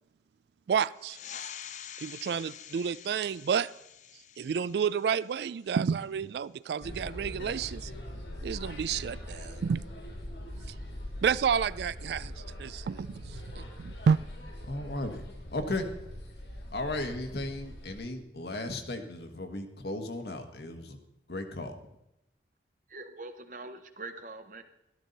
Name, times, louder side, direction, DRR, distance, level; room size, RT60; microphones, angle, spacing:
voice 1, 0.7-1.5 2.0-3.7 4.4-7.9 8.4-9.8 11.2-12.3 12.6-14.2, right 7 dB, 70° right, 19 dB, 0.3 m, -30 dB
sound 1, 0.9-6.0, left 9 dB, 45° left, 0.5 m, -47 dB
sound 2, 6.8-18.0, left 1 dB, 85° left, 3.3 m, -42 dB
voice 2, 14.7-15.3 15.5-15.9 16.7-21.0 21.3-21.8, left 2 dB, 70° left, 5 dB, 1.4 m, -35 dB
voice 3, 22.9-24.6, right 2 dB, 50° right, 8 dB, 1.1 m, -43 dB
13.0 x 12.5 x 4.0 m, 0.89 s
head